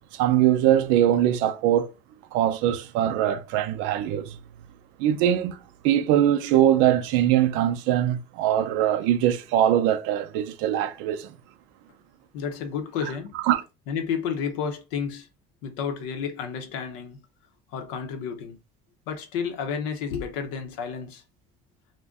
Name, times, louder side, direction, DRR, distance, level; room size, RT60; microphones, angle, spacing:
voice 1, 0.1-1.9 2.3-4.4 5.0-5.6 5.8-11.3 13.4-13.6, right 11 dB, 80° right, 0.4 m, -22 dB
voice 2, 12.3-13.3 13.9-15.3 15.6-17.2 17.7-18.6 19.1-21.2, left 6 dB, 80° left, 0.7 m, -31 dB
2.5 x 2.1 x 3.5 m
supercardioid pair, 95°, 19 cm